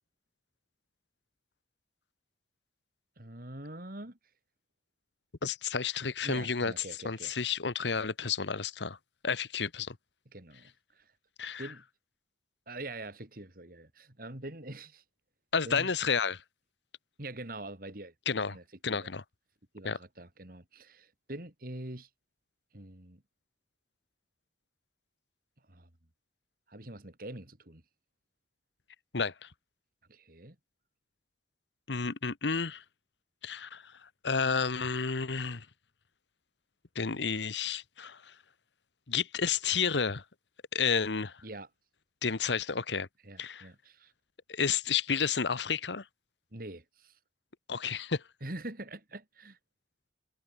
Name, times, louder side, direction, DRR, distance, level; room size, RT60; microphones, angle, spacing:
voice 1, 3.2-4.2 6.2-7.3 10.3-11.1 11.6-11.8 12.7-15.0 15.6-15.9 17.2-18.6 18.9-19.1 19.7-22.1 22.7-23.2 25.7-25.9 26.7-27.8 30.1-30.6 41.4-41.7 43.2-44.1 46.5-47.2 48.4-49.6, right 1 dB, 55° right, 3.2 m, -44 dB
voice 2, 5.4-9.0 9.2-10.0 11.4-11.7 15.5-16.4 18.3-18.6 18.8-19.2 19.8-20.0 29.1-29.5 31.9-32.8 33.4-35.7 36.9-38.3 39.1-40.2 40.7-41.4 42.2-43.1 43.4-43.7 44.5-46.0 47.7-48.2, left 5 dB, 90° left, 1.1 m, -31 dB
head